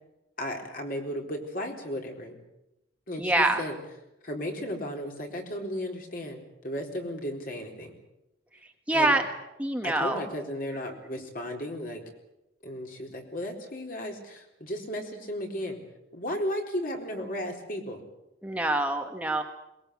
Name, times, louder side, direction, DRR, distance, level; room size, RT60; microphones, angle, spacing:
voice 1, 0.4-2.4 3.1-3.8 4.2-7.9 8.9-9.2 9.8-12.0 12.6-15.8 16.1-18.0, equal, 50° left, 2 dB, 4.2 m, -35 dB
voice 2, 3.2-3.6 8.9-9.2 9.6-10.2 18.4-19.4, right 2 dB, 5° right, 3 dB, 1.4 m, -25 dB
22.5 x 20.5 x 8.3 m, 0.90 s
head